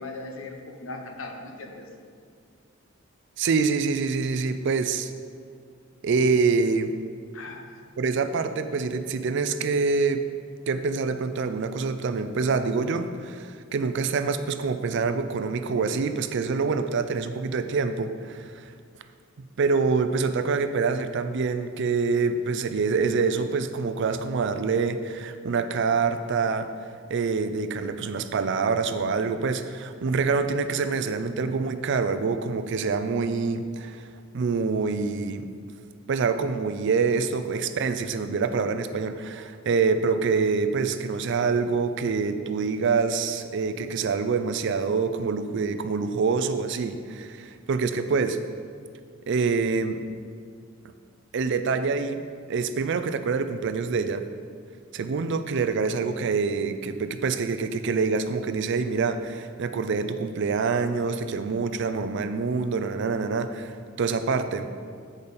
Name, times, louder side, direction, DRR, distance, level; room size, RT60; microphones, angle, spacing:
voice 1, 0.0-1.9 7.3-7.7, left 2 dB, 80° left, 3 dB, 0.9 m, -38 dB
voice 2, 3.4-5.1 6.0-6.9 8.0-10.2 10.7-18.7 19.6-26.7 27.1-34.0 34.3-35.5 36.1-48.4 49.3-50.0 51.3-52.2 52.5-54.2 54.9-64.7, right 4 dB, 60° right, 10 dB, 0.4 m, -26 dB
8.6 x 5.0 x 4.1 m, 2.2 s
head